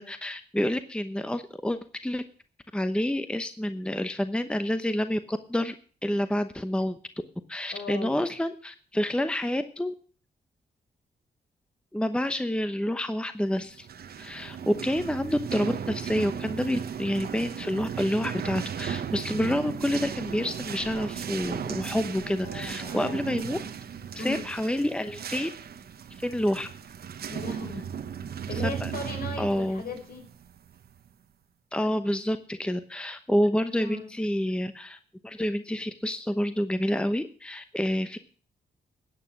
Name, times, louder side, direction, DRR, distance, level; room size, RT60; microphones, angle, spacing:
voice 1, 0.0-2.2 2.7-5.7 6.0-7.0 7.5-9.9 11.9-13.9 14.2-23.6 24.1-25.5 26.2-26.7 28.8-28.9 29.4-29.8 31.7-35.0 35.2-38.2, left 1 dB, 5° left, 10 dB, 0.9 m, -28 dB
voice 2, 7.7-8.2 21.9-23.2 23.5-23.7 24.2-24.4 27.3-27.9 28.5-30.2 33.8-34.1, left 3 dB, 65° left, 3 dB, 5.0 m, -37 dB
sound 1, 13.7-31.1, right 8 dB, 70° right, 1.1 m, -36 dB
13.5 x 8.6 x 6.0 m, 0.42 s
cardioid pair, 65°, 17 cm